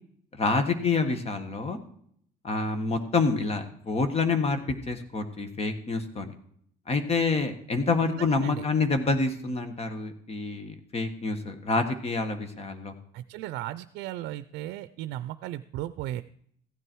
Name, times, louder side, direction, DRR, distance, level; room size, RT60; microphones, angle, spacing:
voice 1, 0.4-1.8 2.4-6.3 6.9-12.9, left 4 dB, 35° left, 8 dB, 1.7 m, -27 dB
voice 2, 8.2-8.7 13.1-16.2, right 14 dB, 85° right, 14 dB, 0.5 m, -36 dB
15.0 x 9.9 x 4.6 m, 0.65 s
cardioid pair, 110°, 17 cm